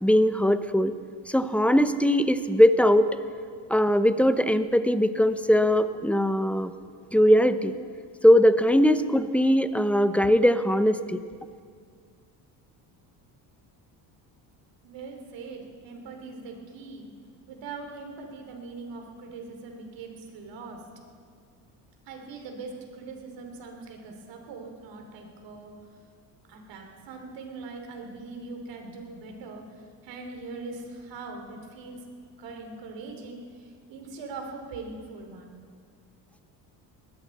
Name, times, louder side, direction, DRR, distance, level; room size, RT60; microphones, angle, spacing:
voice 1, 0.0-0.9 1.3-3.1 3.7-6.7 7.1-7.7 8.2-11.2, equal, 5° left, 12 dB, 0.6 m, -20 dB
voice 2, 14.8-17.1 17.5-20.8 22.1-25.7 26.5-32.0 32.4-35.5, right 3 dB, 70° right, 3 dB, 3.1 m, -41 dB
20.0 x 15.5 x 4.2 m, 2.1 s
supercardioid pair, 90°, 46 cm